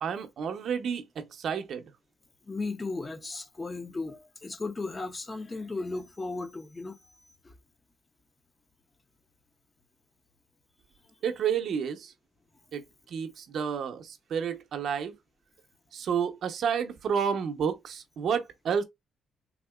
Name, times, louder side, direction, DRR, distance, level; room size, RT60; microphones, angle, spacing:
voice 1, 0.0-1.9 11.2-12.1 12.7-15.1 15.9-18.8, right 7 dB, 65° right, 0.6 m, -30 dB
voice 2, 2.4-7.0 7.4-7.5, left 3 dB, 25° left, 0.6 m, -35 dB
3.6 x 2.7 x 2.3 m
cardioid pair, 90°, 0 cm